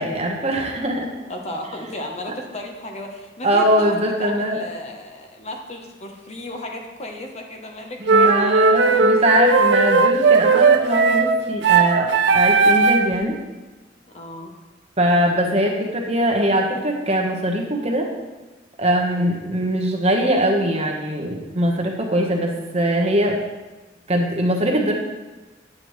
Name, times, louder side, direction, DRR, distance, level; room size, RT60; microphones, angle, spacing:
voice 1, 0.0-1.1 3.4-4.6 8.1-13.3 15.0-18.0 18.8-23.4 24.1-24.9, right 1 dB, 35° right, 0 dB, 1.2 m, -21 dB
voice 2, 1.1-9.2 14.1-14.5 19.1-19.3, left 1 dB, 35° left, 2 dB, 0.9 m, -35 dB
sound 1, 8.1-13.2, right 4 dB, 65° right, 0.5 m, -16 dB
8.7 x 8.2 x 3.2 m, 1.2 s
head